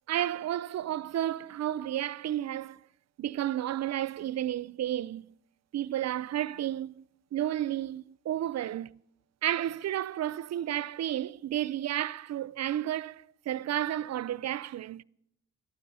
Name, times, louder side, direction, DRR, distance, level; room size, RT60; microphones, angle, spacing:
voice 1, 0.1-2.8 3.2-5.3 5.7-7.1 7.3-9.0 9.4-15.0, right 12 dB, 55° right, 0.4 m, -32 dB
14.5 x 12.5 x 5.5 m
cardioid pair, 65°, 33 cm